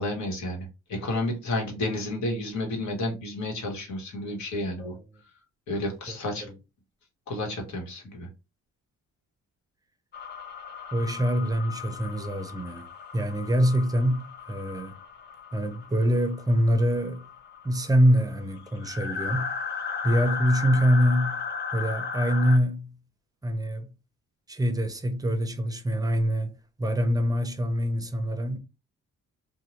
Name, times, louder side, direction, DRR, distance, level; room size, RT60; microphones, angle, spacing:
voice 1, 0.0-5.3 5.7-6.5 7.3-8.3, left 1 dB, 65° left, 1.3 m, -31 dB
sound 1, 10.1-22.6, left 5 dB, 35° left, 0.6 m, -36 dB
voice 2, 10.9-12.9 13.1-15.0 15.5-17.2 17.6-19.5 20.0-21.4 21.7-22.9 23.4-23.9 24.5-28.6, equal, 10° right, 0.6 m, -25 dB
2.7 x 2.2 x 3.1 m
cardioid pair, 90°, 30 cm